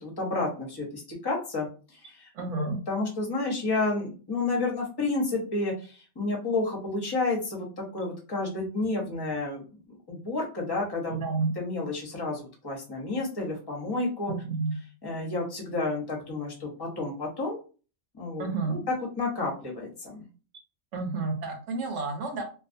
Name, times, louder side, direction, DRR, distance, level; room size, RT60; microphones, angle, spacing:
voice 1, 0.0-2.3 2.9-9.6 10.1-11.2 11.6-14.3 15.0-17.6 18.1-20.3, left 3 dB, 25° left, -2 dB, 0.6 m, -30 dB
voice 2, 2.3-2.8 11.1-11.5 14.3-14.7 18.4-18.8 20.9-22.4, right 3 dB, 70° right, 3 dB, 1.0 m, -30 dB
2.4 x 2.4 x 2.5 m, 0.37 s
omnidirectional pair, 1.3 m